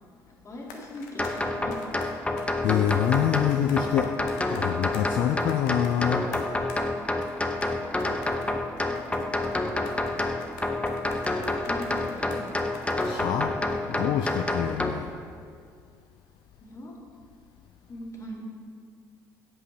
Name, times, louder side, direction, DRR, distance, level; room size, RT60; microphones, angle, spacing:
voice 1, 0.3-1.8 8.7-9.1 11.6-12.5 16.6-17.0 17.9-18.4, left 1 dB, 35° left, -2 dB, 2.1 m, -41 dB
sound 1, 0.6-2.5 2.9-6.8 7.2-7.3 7.6-7.7 8.0-13.2 13.7-13.8, left 5 dB, 80° left, 0.9 m, -47 dB
sound 2, 1.2-14.9, left 2 dB, 15° left, 0.7 m, -28 dB
voice 2, 2.6-4.1 4.5-6.3 13.0-13.5 13.9-15.1, left 10 dB, 60° left, 7 dB, 0.4 m, -26 dB
7.7 x 5.6 x 5.9 m, 2.1 s
hypercardioid pair, 55°, 9 cm